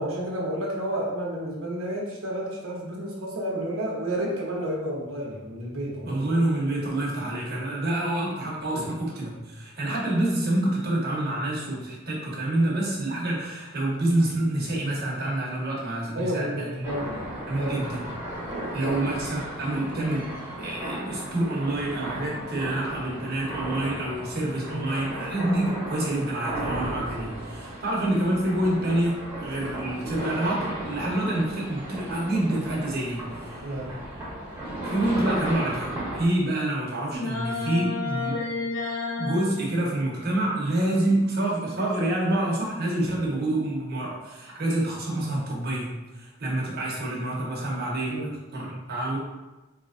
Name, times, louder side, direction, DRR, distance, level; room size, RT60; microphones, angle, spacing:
voice 1, 0.0-6.3 8.7-8.9 16.1-17.2 17.6-17.9 18.8-19.0 24.7-24.9 33.6-34.0 48.1-48.3, right 1 dB, 75° right, -3 dB, 0.9 m, -31 dB
voice 2, 6.0-16.8 17.5-18.1 18.7-33.7 34.8-38.5 39.2-49.2, right 1 dB, 50° right, -4 dB, 1.0 m, -27 dB
sound 1, 16.8-36.3, right 1 dB, 10° right, 1.2 m, -35 dB
sound 2, 37.1-39.5, left 3 dB, 65° left, 0.9 m, -30 dB
4.3 x 3.0 x 2.5 m, 1.1 s
head